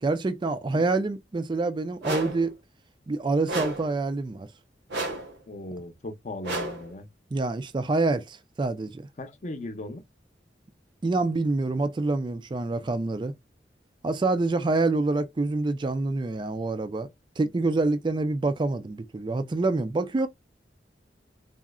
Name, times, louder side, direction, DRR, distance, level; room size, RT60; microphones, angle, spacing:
voice 1, 0.0-2.6 3.1-4.5 7.3-9.0 11.0-13.3 14.0-17.1 17.4-20.3, right 3 dB, 25° right, 0.3 m, -26 dB
sound 1, 2.0-2.5 3.5-4.0 4.9-5.4 6.4-6.9, right 2 dB, 75° right, 0.9 m, -32 dB
voice 2, 5.5-7.1 9.2-10.0, left 2 dB, 40° left, 0.7 m, -37 dB
3.6 x 2.1 x 2.3 m
head